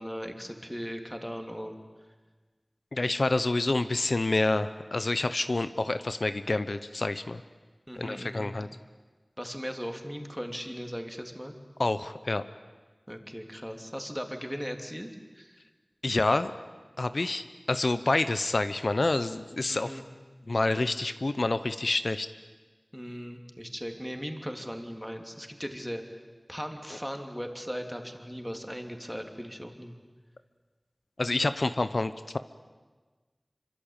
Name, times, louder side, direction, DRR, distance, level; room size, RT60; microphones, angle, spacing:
voice 1, 0.0-1.8 7.9-8.5 9.4-11.5 13.1-15.1 15.4-15.6 19.7-20.0 22.9-26.2 26.5-29.9, equal, ahead, 4 dB, 3.3 m, -38 dB
voice 2, 2.9-7.4 8.0-8.7 11.8-12.4 16.0-16.5 17.0-20.0 20.5-22.3 31.2-32.4, left 2 dB, 80° left, 12 dB, 0.8 m, -28 dB
26.5 x 24.5 x 9.0 m, 1.4 s
wide cardioid pair, 45°, 0 cm